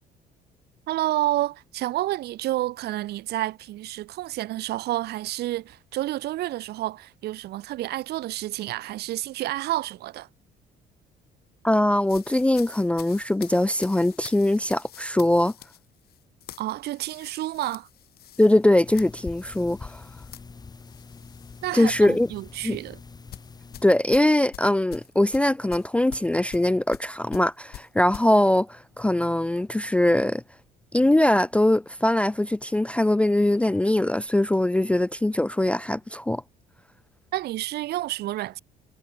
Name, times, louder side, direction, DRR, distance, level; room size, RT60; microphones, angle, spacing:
voice 1, 0.9-10.3 16.6-17.9 21.6-23.0 37.3-38.6, right 15 dB, 75° right, 1.4 m, -29 dB
voice 2, 11.6-15.5 18.4-20.0 21.7-22.3 22.6-22.8 23.8-30.4 30.9-36.4, left 1 dB, 5° left, 0.3 m, -22 dB
sound 1, 12.0-21.6 22.0-22.2 23.3-28.3, left 13 dB, 65° left, 8.0 m, -46 dB
sound 2, 18.8-23.8, left 4 dB, 25° left, 1.6 m, -44 dB
cardioid pair, 110°, 17 cm